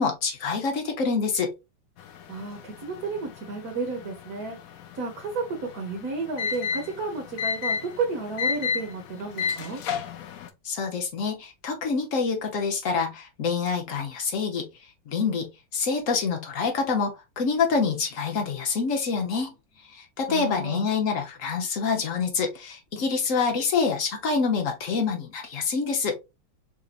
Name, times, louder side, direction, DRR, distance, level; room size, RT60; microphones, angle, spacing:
voice 1, 0.0-1.5 10.6-14.7 15.1-19.5 19.9-26.2, left 5 dB, 50° left, 1.1 m, -26 dB
sound 1, 2.0-10.5, left 6 dB, 80° left, 0.7 m, -33 dB
voice 2, 2.3-4.6 4.9-5.5 5.7-9.8 20.3-20.9, right 4 dB, 55° right, 1.3 m, -32 dB
5.0 x 2.7 x 2.5 m
omnidirectional pair, 2.2 m